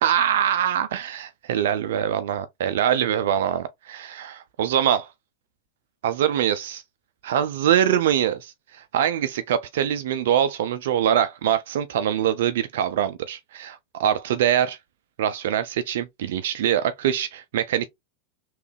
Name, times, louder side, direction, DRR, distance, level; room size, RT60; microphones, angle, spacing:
voice 1, 0.0-5.1 6.0-6.8 7.2-14.8 15.2-17.9, right 10 dB, 70° right, 0.4 m, -23 dB
3.4 x 3.1 x 3.2 m
hypercardioid pair, 95°, 0 cm